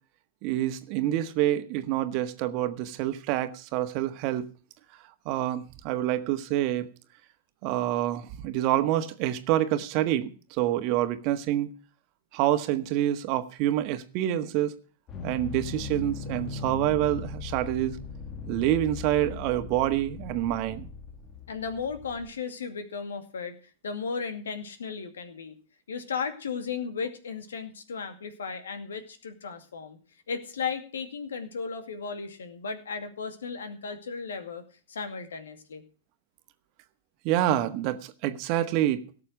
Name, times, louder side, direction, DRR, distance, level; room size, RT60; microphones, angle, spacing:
voice 1, 0.4-4.5 5.2-6.9 7.6-10.3 10.6-11.7 12.3-14.8 15.2-18.0 18.5-20.9 37.2-39.0, right 13 dB, 50° right, 1.5 m, -27 dB
sound 1, 15.1-22.3, left 5 dB, 30° left, 2.4 m, -39 dB
voice 2, 21.5-23.5 23.8-25.6 25.9-30.0 30.3-34.6 34.9-35.8, left 5 dB, 80° left, 2.4 m, -35 dB
17.5 x 6.8 x 6.4 m
hypercardioid pair, 105°, 0 cm